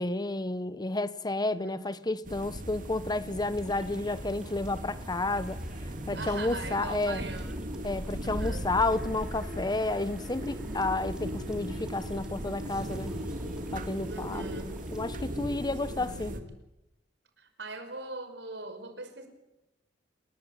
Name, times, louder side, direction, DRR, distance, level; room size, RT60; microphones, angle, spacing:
voice 1, 0.0-5.6 6.1-7.2 7.8-13.2 13.7-14.4 14.9-16.4, left 2 dB, 25° left, 1.0 m, -31 dB
voice 2, 1.5-1.9 6.1-7.7 8.2-8.8 14.1-14.8 15.8-16.4 17.4-19.3, right 2 dB, 80° right, 5.6 m, -41 dB
sound 1, 2.2-16.4, equal, 50° right, 2.5 m, -38 dB
sound 2, 3.5-15.3, equal, 5° right, 4.0 m, -51 dB
28.5 x 20.0 x 9.0 m
head